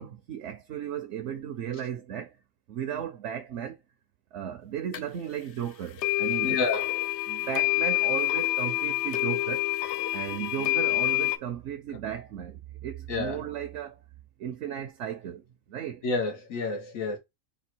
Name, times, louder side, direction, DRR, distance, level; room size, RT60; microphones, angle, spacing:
voice 1, 0.0-2.4 2.7-3.8 4.3-6.5 7.3-9.7 10.1-14.0 14.4-16.1, right 9 dB, 70° right, 0.9 m, -35 dB
sound 1, 4.9-5.0 6.0-11.4, left 19 dB, 65° left, 0.8 m, -27 dB
voice 2, 6.4-6.8 13.1-13.4 16.0-17.2, left 3 dB, 90° left, 1.5 m, -29 dB
4.1 x 2.3 x 4.4 m
omnidirectional pair, 1.4 m